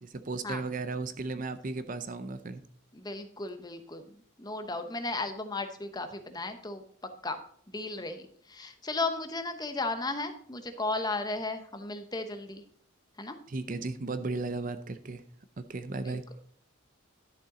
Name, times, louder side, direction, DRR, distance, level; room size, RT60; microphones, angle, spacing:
voice 1, 0.0-2.6 13.5-15.2 15.6-16.2, right 3 dB, 40° right, 11 dB, 0.5 m, -35 dB
voice 2, 2.9-4.0 4.4-6.8 7.2-7.4 7.7-12.6 13.2-13.4 16.0-16.2, left 3 dB, 20° left, 8 dB, 0.9 m, -35 dB
11.5 x 7.0 x 3.8 m, 0.62 s
head